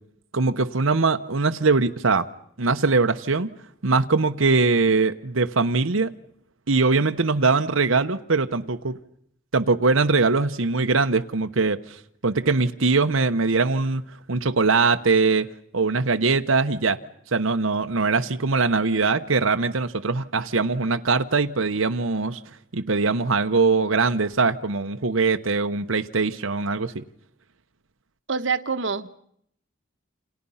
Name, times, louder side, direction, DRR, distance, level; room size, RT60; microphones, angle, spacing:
voice 1, 0.3-2.3 2.6-3.5 3.8-6.1 6.7-9.0 9.5-14.0 14.3-15.5 15.7-17.0 17.3-22.4 22.7-27.0, right 4 dB, 85° right, 1.1 m, -22 dB
voice 2, 28.3-29.1, right 5 dB, 65° right, 1.2 m, -26 dB
29.0 x 28.0 x 5.7 m
head